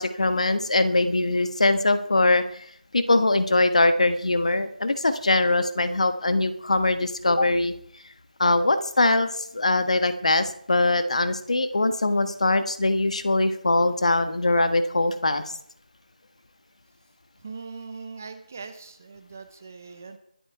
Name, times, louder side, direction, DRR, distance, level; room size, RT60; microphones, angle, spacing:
voice 1, 0.0-2.6 2.9-7.7 8.4-15.4, left 2 dB, 45° left, 10 dB, 1.4 m, -22 dB
voice 2, 17.4-20.2, right 4 dB, 15° right, 8 dB, 0.7 m, -40 dB
23.0 x 8.8 x 4.6 m, 0.67 s
figure-of-eight pair, 175°, 5 cm